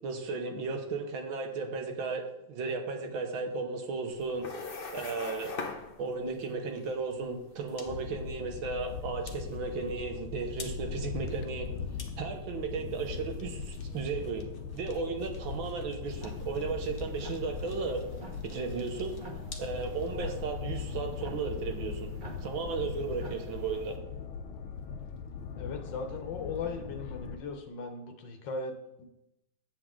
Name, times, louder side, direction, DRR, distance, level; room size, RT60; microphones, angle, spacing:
voice 1, 0.0-4.5 4.9-5.5 6.0-11.7 12.2-14.5 14.7-18.0 18.4-19.2 19.6-22.1 22.4-24.0, right 4 dB, 80° right, 4 dB, 1.8 m, -35 dB
sound 1, 4.1-20.3, left 4 dB, 50° left, 0.6 m, -47 dB
sound 2, 7.9-27.4, left 6 dB, 85° left, 1.5 m, -40 dB
sound 3, 16.1-24.0, right 2 dB, 35° right, 0.9 m, -49 dB
voice 2, 25.5-29.1, left 4 dB, 70° left, 5 dB, 1.6 m, -38 dB
8.1 x 7.8 x 3.7 m, 0.86 s
omnidirectional pair, 2.2 m